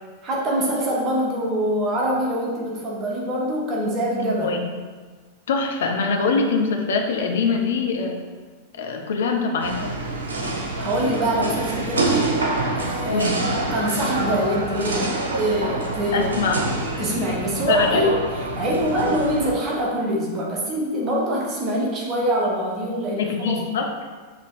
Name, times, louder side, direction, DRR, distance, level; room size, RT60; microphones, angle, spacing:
voice 1, 0.2-4.5 10.8-12.3 12.7-16.3 17.0-18.2 18.6-23.6, right 1 dB, 30° right, -3 dB, 1.5 m, -24 dB
voice 2, 5.5-8.2 8.8-9.8 13.1-13.4 16.1-16.6 17.7-18.0 23.2-23.9, left 4 dB, 60° left, 3 dB, 0.8 m, -23 dB
sound 1, 9.6-19.5, right 2 dB, 70° right, 1.0 m, -26 dB
6.9 x 3.3 x 4.8 m, 1.4 s
figure-of-eight pair, 90°, 0 cm